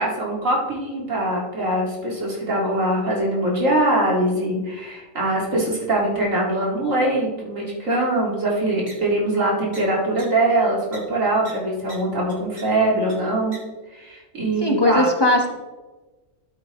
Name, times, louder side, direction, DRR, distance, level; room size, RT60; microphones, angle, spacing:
voice 1, 0.0-13.6 13.9-15.1, right 1 dB, 65° right, -3 dB, 2.7 m, -22 dB
sound 1, 8.9-9.0 9.7-9.8 10.2-10.3 10.9-11.0 11.4-11.5 11.9-12.0 12.3-12.6 13.1-13.2 13.5-13.6, right 2 dB, 40° right, 2.3 m, -39 dB
voice 2, 14.6-15.5, left 1 dB, 20° left, 1 dB, 1.1 m, -18 dB
13.0 x 8.2 x 3.1 m, 1.2 s
omnidirectional pair, 1.5 m